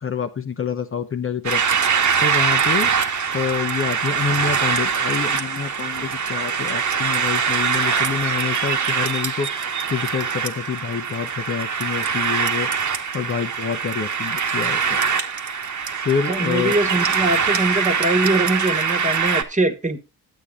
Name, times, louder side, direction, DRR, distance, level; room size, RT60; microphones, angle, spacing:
voice 1, 0.0-2.9 3.3-12.7 13.1-15.0 16.0-16.8, left 6 dB, 35° left, 0.8 m, -27 dB
sound 1, 1.4-19.4, right 6 dB, 50° right, 1.3 m, -23 dB
voice 2, 16.3-20.0, right 2 dB, 20° right, 1.4 m, -22 dB
10.5 x 8.4 x 3.6 m
cardioid pair, 90°, 39 cm